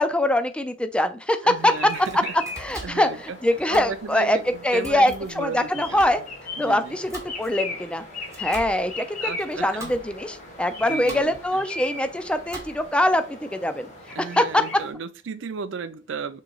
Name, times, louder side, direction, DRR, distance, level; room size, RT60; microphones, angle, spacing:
voice 1, 0.0-1.7 2.6-4.4 4.6-6.2 6.6-8.0 8.4-13.9 14.4-14.6, left 1 dB, 5° left, 0.4 m, -23 dB
voice 2, 1.4-2.3 2.8-3.4 3.7-6.0 6.6-7.0 9.2-10.0 10.9-11.6 14.1-16.4, right 5 dB, 80° right, 0.5 m, -34 dB
sound 1, 1.5-14.9, left 2 dB, 40° left, 1.5 m, -38 dB
Domestic sounds home sounds, 1.7-13.1, right 2 dB, 15° right, 1.2 m, -43 dB
6.1 x 3.1 x 2.3 m
head